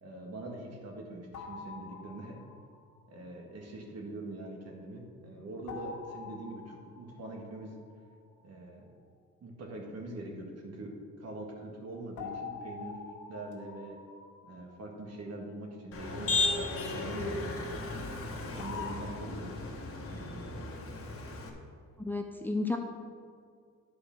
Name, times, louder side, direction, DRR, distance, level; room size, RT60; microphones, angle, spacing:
voice 1, 0.0-2.4 3.1-7.8 8.4-8.9 9.4-13.0 13.3-14.0 14.4-17.8 18.3-19.7 20.0-20.7, right 2 dB, 55° right, 1 dB, 1.9 m, -43 dB
sound 1, 1.3-2.9 5.7-8.1 12.2-15.3 18.6-19.1, left 5 dB, 80° left, 1.8 m, -46 dB
Motor vehicle (road), 15.9-21.5, left 3 dB, 45° left, 1.5 m, -35 dB
voice 2, 22.0-22.8, left 2 dB, 5° left, 4 dB, 0.6 m, -32 dB
10.0 x 4.8 x 6.0 m, 2.1 s
cardioid pair, 90°, 30 cm